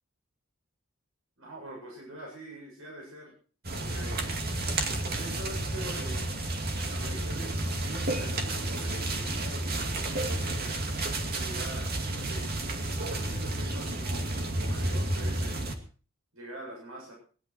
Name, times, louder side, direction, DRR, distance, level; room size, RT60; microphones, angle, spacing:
voice 1, 1.4-3.3 3.7-4.3 4.8-6.3 6.8-10.7 11.2-12.4 13.1-14.3 14.6-15.6 16.3-17.1, right 1 dB, 80° right, -2 dB, 7.5 m, -44 dB
sound 1, 3.6-15.7, right 2 dB, 50° right, 2.5 m, -31 dB
20.5 x 12.0 x 4.5 m, 0.40 s
head